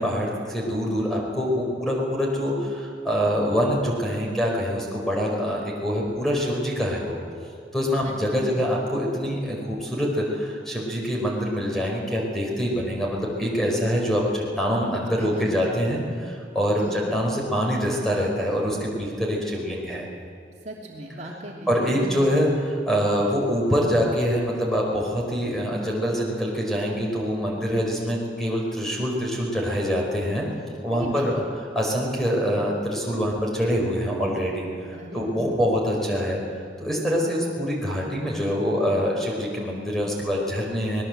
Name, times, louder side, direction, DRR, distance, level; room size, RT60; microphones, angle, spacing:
voice 1, 0.0-7.2 7.7-20.1 21.7-30.5 30.8-31.4 31.7-34.6 35.1-36.4 36.8-41.0, equal, ahead, -2 dB, 4.9 m, -25 dB
voice 2, 8.0-8.6 14.7-15.6 16.8-17.1 20.6-22.3 30.9-31.4 34.9-35.6, equal, 40° right, -2 dB, 2.9 m, -38 dB
24.5 x 20.0 x 7.9 m, 2.3 s
head